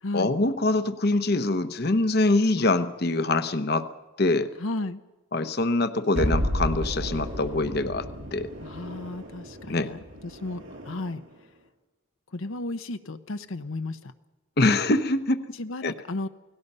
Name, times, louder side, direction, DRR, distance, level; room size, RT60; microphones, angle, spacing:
voice 1, 0.1-3.9 4.2-4.5 5.3-8.5 9.7-9.9 14.6-15.4 15.8-15.9, left 2 dB, 50° left, 10 dB, 0.9 m, -24 dB
voice 2, 4.6-5.0 8.6-11.2 12.3-14.1 15.5-16.3, left 2 dB, 80° left, 9 dB, 0.9 m, -34 dB
sound 1, 6.2-11.3, equal, 80° right, 6.4 m, -32 dB
29.0 x 18.5 x 5.5 m, 1.1 s
head